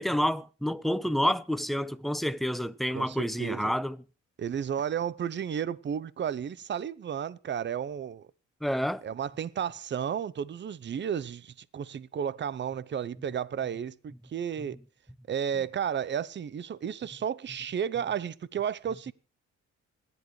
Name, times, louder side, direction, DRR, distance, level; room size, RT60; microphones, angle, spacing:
voice 1, 0.0-4.0 8.6-9.0, equal, ahead, 0.7 m, -29 dB
voice 2, 2.9-3.7 4.4-8.3 9.0-14.8 15.3-19.1, right 8 dB, 40° right, 0.7 m, -33 dB
26.5 x 10.5 x 3.2 m
cardioid pair, 90°, 30 cm